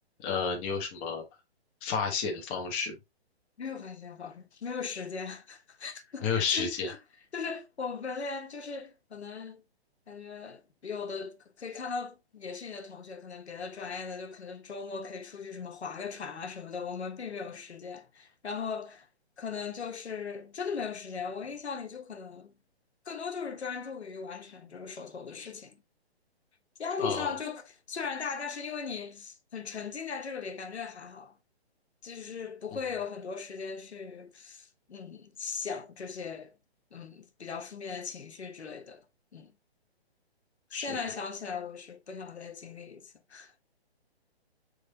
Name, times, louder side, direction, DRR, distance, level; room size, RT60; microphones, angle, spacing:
voice 1, 0.2-1.2 1.8-2.9 6.2-6.9 27.0-27.3 32.7-32.8 40.7-41.0, left 5 dB, 15° left, 0.5 m, -31 dB
voice 2, 3.6-7.0 7.3-9.6 10.1-19.1 19.4-22.5 23.0-25.8 26.8-31.3 32.0-36.6 36.9-39.0 39.3-39.5 40.7-43.5, left 5 dB, 85° left, 1.1 m, -38 dB
5.1 x 3.4 x 2.7 m
hypercardioid pair, 145°, 32 cm